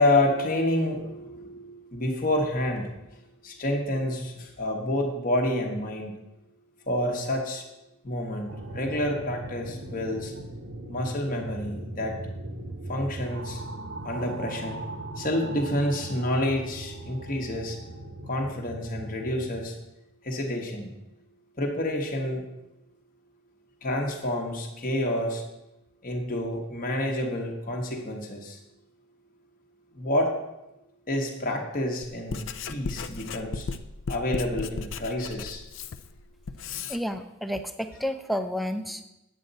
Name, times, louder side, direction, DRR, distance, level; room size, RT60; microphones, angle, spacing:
voice 1, 0.0-2.9 3.4-6.1 6.9-7.6 8.0-10.3 10.9-12.2 12.9-13.6 14.0-14.8 15.2-17.8 18.3-19.7 20.2-20.9 21.6-22.5 23.8-25.4 26.0-28.6 30.0-30.4 31.1-33.7 34.1-35.6, left 1 dB, 40° left, 1 dB, 1.0 m, -28 dB
sound 1, 8.5-19.6, right 1 dB, 85° right, 1.1 m, -39 dB
Writing, 32.0-37.0, left 4 dB, 65° left, 0.4 m, -35 dB
voice 2, 36.9-39.0, equal, ahead, 9 dB, 0.4 m, -30 dB
8.8 x 7.9 x 4.0 m, 0.93 s
head